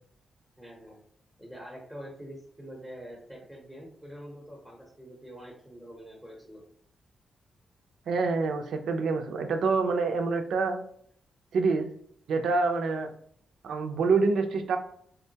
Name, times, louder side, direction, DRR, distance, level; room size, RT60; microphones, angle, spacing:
voice 1, 0.6-1.0 1.4-6.6, equal, ahead, -2 dB, 0.8 m, -45 dB
voice 2, 8.1-10.8 11.5-11.9 12.3-13.1 13.6-14.8, right 4 dB, 75° right, 6 dB, 0.4 m, -26 dB
3.5 x 2.2 x 2.7 m, 0.65 s
wide cardioid pair, 145°, 0 cm